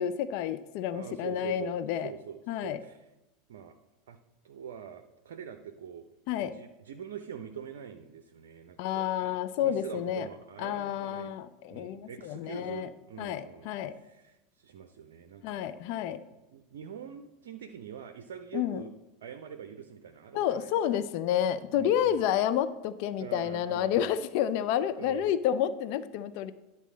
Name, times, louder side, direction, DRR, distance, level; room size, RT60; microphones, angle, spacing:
voice 1, 0.0-2.1 2.5-2.8 6.3-6.5 8.8-10.3 10.6-12.9 13.2-14.0 15.4-16.2 18.5-18.8 20.3-26.5, left 10 dB, 55° left, 13 dB, 0.4 m, -30 dB
voice 2, 0.9-3.1 3.5-3.8 4.1-4.2 4.4-6.1 6.4-9.3 9.6-11.3 11.7-15.7 16.3-18.9 19.2-21.0 21.7-22.3 23.2-24.2 25.0-25.3, right 8 dB, 65° right, 7 dB, 0.5 m, -44 dB
10.0 x 4.1 x 7.2 m, 0.98 s
figure-of-eight pair, 80°, 0 cm